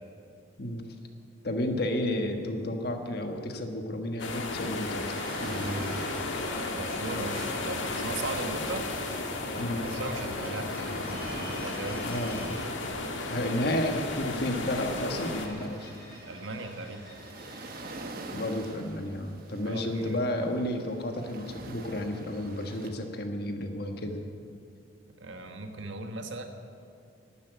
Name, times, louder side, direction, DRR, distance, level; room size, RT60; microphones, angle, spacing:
voice 1, 1.4-5.1 5.4-6.0 9.6-9.8 12.0-12.6 13.3-15.9 18.3-24.3, left 1 dB, 55° left, 4 dB, 1.4 m, -32 dB
sound 1, 4.2-15.5, left 3 dB, 85° left, 1.6 m, -34 dB
sound 2, 4.5-18.0, equal, 20° left, 4.3 m, -46 dB
sound 3, 4.5-22.9, right 2 dB, 50° right, 1.3 m, -46 dB
voice 2, 6.7-8.9 9.8-11.3 11.6-12.1 16.2-17.0 19.6-20.2 25.2-26.4, right 2 dB, 80° right, 5 dB, 1.4 m, -38 dB
12.0 x 10.5 x 9.3 m, 2.4 s
head